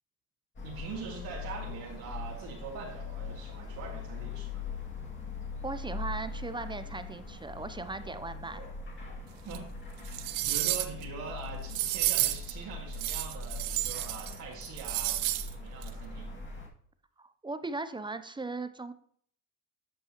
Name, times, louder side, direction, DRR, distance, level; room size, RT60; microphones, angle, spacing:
sound 1, 0.6-16.7, left 4 dB, 30° left, 2.3 m, -41 dB
voice 1, 0.6-4.7 9.5-9.7 10.1-16.3, right 5 dB, 70° right, -3 dB, 2.1 m, -43 dB
voice 2, 5.6-8.6 17.2-18.9, right 3 dB, 15° right, 11 dB, 0.5 m, -38 dB
sound 2, 9.5-9.6 10.1-11.0 11.7-12.5 12.9-14.3 14.6-15.5 15.8-15.9, right 17 dB, 90° right, 0.7 m, -31 dB
14.0 x 5.4 x 2.9 m, 0.62 s
supercardioid pair, 85°, 36 cm